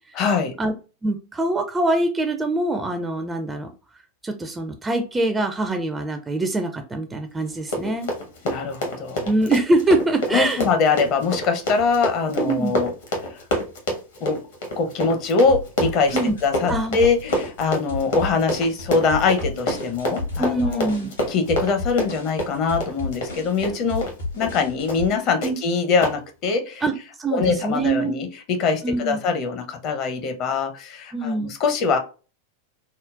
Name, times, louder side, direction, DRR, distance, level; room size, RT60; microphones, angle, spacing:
voice 1, 0.1-0.5 8.4-9.3 10.3-12.9 13.3-13.4 14.2-14.4 14.8-16.2 16.4-20.9 21.3-24.1 24.4-26.8 27.3-32.0, left 4 dB, 40° left, 6 dB, 0.6 m, -23 dB
voice 2, 1.0-3.7 4.2-8.1 9.2-10.6 12.4-12.8 16.1-16.3 16.7-17.0 20.4-21.1 25.4-25.6 26.8-26.9 27.2-28.2 28.8-29.2 31.1-31.5, right 2 dB, 15° right, 7 dB, 0.4 m, -23 dB
Run, 7.5-24.2 24.4-24.6 24.9-25.1 25.4-25.5 26.0-26.2, equal, 60° left, 1.0 m, -27 dB
sound 1, 15.5-25.1, left 2 dB, 80° left, 1.5 m, -33 dB
3.7 x 2.0 x 2.3 m, 0.34 s
figure-of-eight pair, 90°, 0 cm